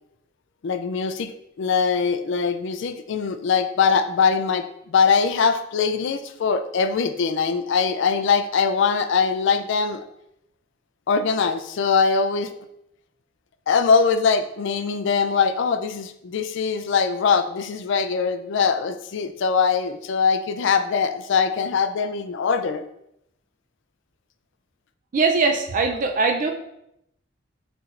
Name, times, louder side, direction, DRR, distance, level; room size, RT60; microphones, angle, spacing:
voice 1, 0.6-1.3 1.6-10.0 11.1-12.5 13.7-22.8, left 5 dB, 65° left, 10 dB, 0.4 m, -22 dB
voice 2, 25.1-26.5, right 4 dB, 40° right, 4 dB, 0.4 m, -21 dB
5.8 x 3.2 x 2.5 m, 0.79 s
head